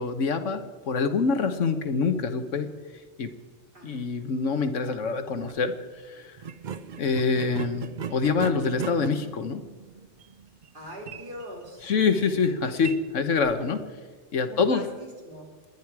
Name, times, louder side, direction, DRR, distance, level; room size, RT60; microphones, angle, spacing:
voice 1, 0.0-2.7 3.2-3.3 3.8-5.7 6.0-6.4 7.0-9.6 11.8-13.8 14.3-14.8, left 5 dB, 70° left, 8 dB, 1.4 m, -25 dB
voice 2, 3.7-4.1 6.7-7.0 10.7-11.9 14.5-15.5, equal, 40° right, -2 dB, 3.9 m, -42 dB
sound 1, 5.3-5.6 6.4-13.9, right 7 dB, 55° right, 0.5 m, -39 dB
28.5 x 10.5 x 4.7 m, 1.4 s
omnidirectional pair, 1.4 m